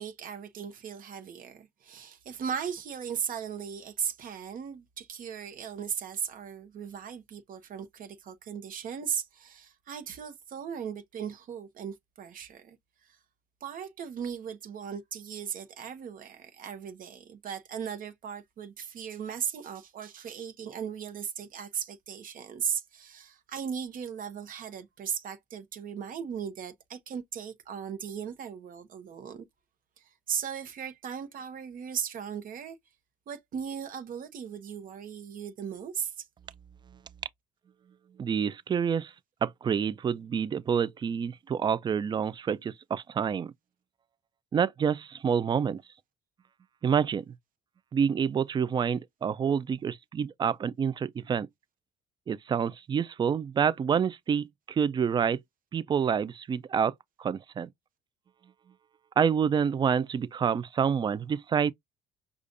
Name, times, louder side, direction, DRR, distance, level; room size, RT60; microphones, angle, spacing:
voice 1, 0.0-12.8 13.6-29.4 30.0-32.8 33.3-36.3, right 8 dB, 55° right, 0.9 m, -37 dB
voice 2, 38.2-39.1 39.4-43.5 44.5-45.8 46.8-47.2 47.9-51.5 52.3-55.4 55.7-56.9 57.2-57.7 59.2-61.7, right 7 dB, 25° right, 0.3 m, -27 dB
5.0 x 2.4 x 2.5 m
cardioid pair, 110°, 17 cm